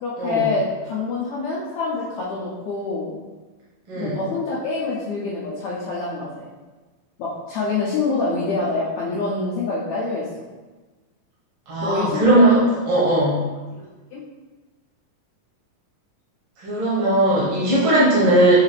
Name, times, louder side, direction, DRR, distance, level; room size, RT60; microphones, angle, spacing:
voice 1, 0.0-3.2 3.9-6.5 7.2-10.4 11.8-12.4 12.9-13.1 13.8-13.9 14.1-14.2, left 3 dB, 85° left, -7 dB, 1.6 m, -26 dB
voice 2, 11.7-12.6 12.9-13.3 16.6-18.5, right 1 dB, 60° right, -7 dB, 1.5 m, -18 dB
5.6 x 2.4 x 3.2 m, 1.2 s
omnidirectional pair, 4.0 m